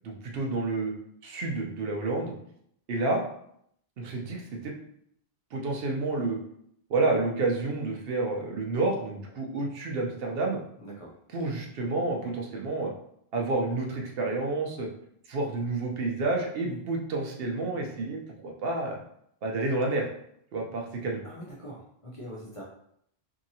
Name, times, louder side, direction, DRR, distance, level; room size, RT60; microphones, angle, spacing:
voice 1, 0.0-0.9 1.2-2.3 2.9-3.2 4.0-4.7 5.5-6.4 6.9-10.6 11.3-12.9 13.3-14.9 15.3-19.0 19.4-20.1 20.5-21.2, right 2 dB, 70° right, 1 dB, 0.8 m, -29 dB
voice 2, 10.8-11.1 16.7-16.8 21.2-22.6, equal, 40° left, -5 dB, 0.6 m, -42 dB
2.7 x 2.7 x 2.7 m, 0.71 s
omnidirectional pair, 1.1 m